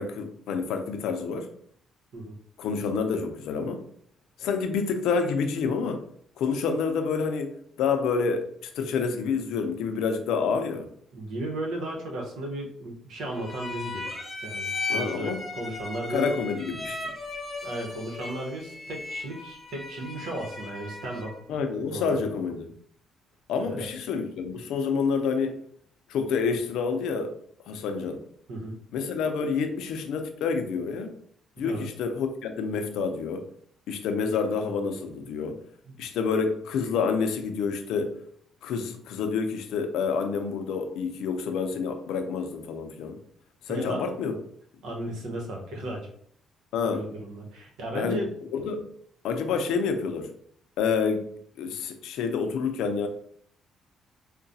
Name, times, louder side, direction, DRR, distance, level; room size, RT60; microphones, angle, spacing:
voice 1, 0.0-1.5 2.6-3.8 4.4-6.0 6.4-10.9 14.9-15.4 16.1-17.1 21.5-22.7 23.5-25.5 26.1-27.3 27.7-28.2 28.9-31.1 31.6-33.5 33.9-35.6 36.0-38.2 38.6-43.2 43.7-44.3 46.7-47.1 47.9-48.2 48.5-48.9 49.2-50.3 50.8-53.1, left 5 dB, 85° left, 0.5 m, -28 dB
voice 2, 11.1-14.1 14.4-16.3 17.6-21.3 21.9-22.3 23.6-23.9 28.5-28.8 31.6-31.9 35.9-36.0 43.7-44.0 44.8-46.1 46.8-48.3, right 1 dB, 85° right, 0.9 m, -35 dB
sound 1, 13.3-21.5, left 3 dB, 15° left, 0.9 m, -36 dB
4.7 x 2.2 x 2.7 m
cardioid pair, 90°, 0 cm